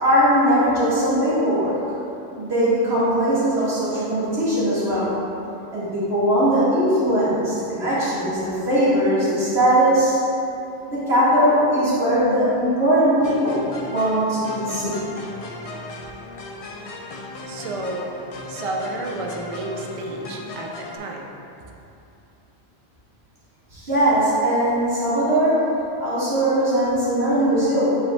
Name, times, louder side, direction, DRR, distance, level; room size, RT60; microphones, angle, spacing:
voice 1, 0.0-1.8 2.4-5.1 5.7-10.2 10.9-13.6 13.9-15.1 23.7-25.6 26.0-28.0, right 1 dB, 70° right, -10 dB, 2.0 m, -20 dB
sound 1, 13.2-21.0, left 2 dB, 50° left, 0.4 m, -37 dB
voice 2, 17.5-18.1 18.5-21.3, right 2 dB, 45° right, 1 dB, 0.4 m, -31 dB
8.0 x 5.2 x 2.2 m, 2.8 s
omnidirectional pair, 1.1 m